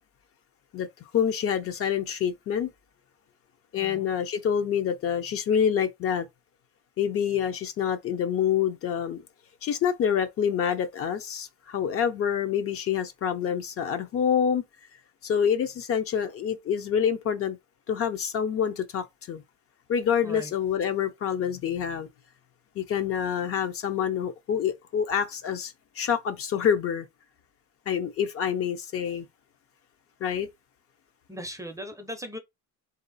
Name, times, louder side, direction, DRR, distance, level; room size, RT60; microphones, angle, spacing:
voice 1, 1.1-2.7 3.7-6.3 7.0-9.2 9.6-14.6 15.2-17.6 17.9-19.4 19.9-22.1 22.8-27.1 27.9-29.3 30.2-30.5, left 8 dB, 45° left, 0.6 m, -27 dB
voice 2, 3.8-4.1 20.2-20.5 31.3-32.4, equal, 10° right, 0.6 m, -38 dB
3.7 x 2.7 x 4.0 m
cardioid pair, 145°, 33 cm